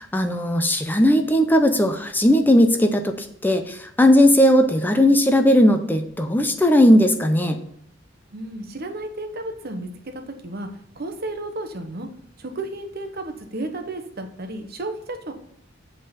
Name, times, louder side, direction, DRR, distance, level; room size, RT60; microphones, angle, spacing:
voice 1, 0.0-7.6, equal, 10° left, 6 dB, 0.5 m, -17 dB
voice 2, 8.3-10.7 11.0-12.1 12.4-15.3, right 2 dB, 50° right, 6 dB, 1.0 m, -33 dB
8.0 x 3.8 x 6.8 m, 0.69 s
head